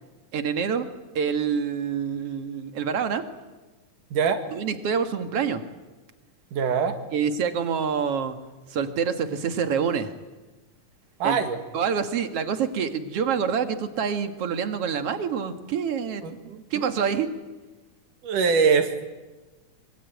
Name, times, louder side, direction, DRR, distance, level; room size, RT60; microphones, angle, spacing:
voice 1, 0.3-0.9 1.2-3.3 4.5-5.6 7.1-8.4 8.7-10.1 11.2-11.4 11.7-17.3, right 7 dB, 55° right, 8 dB, 2.4 m, -26 dB
voice 2, 4.1-4.4 6.5-7.0 11.2-11.6 16.2-16.6 18.2-19.1, right 6 dB, 80° right, 7 dB, 3.5 m, -23 dB
25.5 x 24.5 x 9.3 m, 1.2 s
omnidirectional pair, 3.6 m